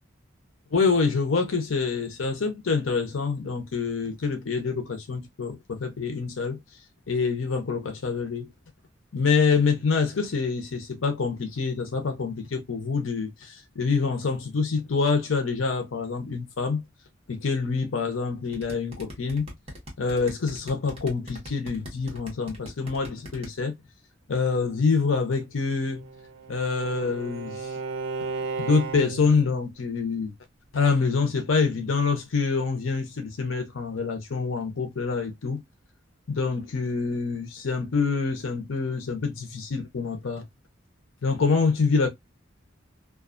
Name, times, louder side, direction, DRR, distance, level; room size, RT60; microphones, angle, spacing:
voice 1, 0.7-6.6 7.1-8.5 9.1-16.8 17.3-19.5 20.0-23.7 24.3-26.0 26.5-27.7 28.6-30.3 30.7-35.6 36.3-40.4 41.2-42.1, left 4 dB, 85° left, 0.7 m, -26 dB
sound 1, 18.5-23.5, equal, 30° right, 0.9 m, -39 dB
Bowed string instrument, 25.8-29.5, right 4 dB, 80° right, 0.5 m, -34 dB
2.4 x 2.3 x 2.4 m
head